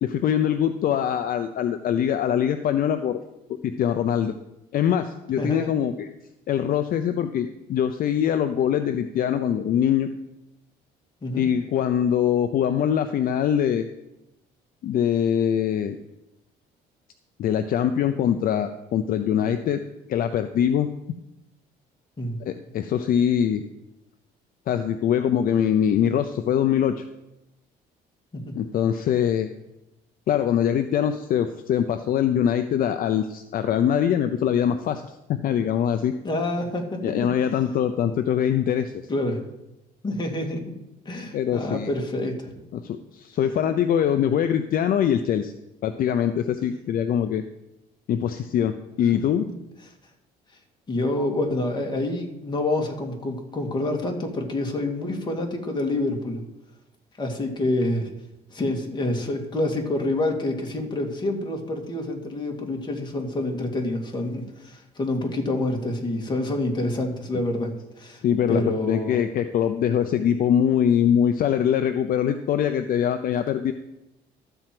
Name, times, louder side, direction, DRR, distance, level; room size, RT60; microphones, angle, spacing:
voice 1, 0.0-3.2 3.6-4.3 4.7-6.1 6.5-10.1 11.4-13.9 14.8-16.0 17.4-19.8 20.1-20.9 22.4-23.6 24.7-27.0 28.6-29.5 30.3-36.1 37.0-38.9 41.3-41.9 42.7-45.5 45.8-47.4 48.1-49.5 68.2-73.7, left 9 dB, 60° left, 8 dB, 0.6 m, -23 dB
voice 2, 5.4-5.7 11.2-11.5 22.2-22.4 28.3-28.6 36.2-37.0 39.1-39.4 40.0-40.6 41.1-42.6 49.1-49.6 50.9-56.4 57.2-58.1 58.5-68.2 68.5-69.2, left 2 dB, 25° left, 2 dB, 2.2 m, -27 dB
12.5 x 4.5 x 7.7 m, 0.91 s
cardioid pair, 110°, 17 cm